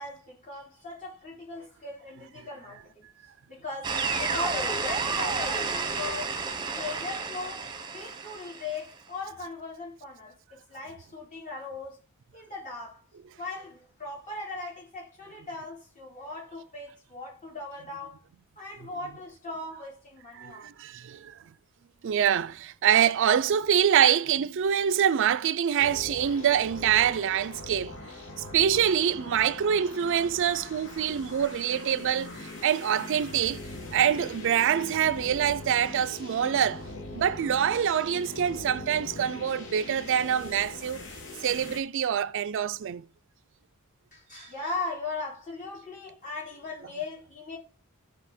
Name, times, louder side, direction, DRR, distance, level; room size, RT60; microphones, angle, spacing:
voice 1, 0.0-3.1 3.5-12.0 12.3-13.0 13.4-18.2 18.5-20.7 44.1-47.6, left 3 dB, 35° left, 5.1 m, -38 dB
sound 1, 3.8-8.8, right 4 dB, 20° right, 1.0 m, -31 dB
voice 2, 20.4-21.3 22.0-28.0 28.5-33.6 33.9-36.8 37.1-41.0 41.4-43.0, right 9 dB, 60° right, 0.4 m, -25 dB
sound 2, 25.8-41.8, left 2 dB, 60° left, 2.8 m, -42 dB
14.0 x 4.9 x 4.3 m
head